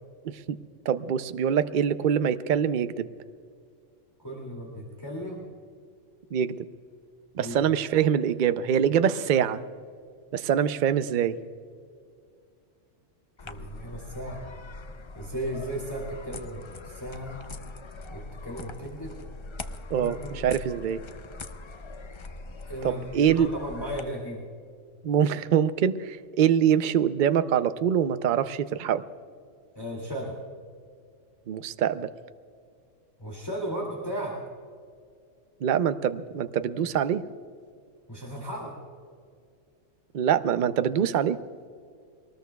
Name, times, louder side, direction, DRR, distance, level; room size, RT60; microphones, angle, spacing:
voice 1, 0.3-0.6 0.9-3.1 6.3-6.6 7.4-9.6 10.3-11.4 19.9-21.0 22.8-23.5 25.0-29.0 31.5-32.1 35.6-37.2 40.1-41.4, right 9 dB, 50° right, 12 dB, 0.6 m, -24 dB
voice 2, 4.2-5.4 7.4-7.6 13.4-14.4 15.1-17.4 18.1-19.2 19.9-20.6 22.6-24.4 29.7-30.4 33.2-34.4 38.1-38.7, equal, 20° left, -2 dB, 2.4 m, -35 dB
sound 1, 13.4-24.0, left 3 dB, 45° left, 0.4 m, -42 dB
23.5 x 19.5 x 2.3 m, 2.2 s
omnidirectional pair, 1.3 m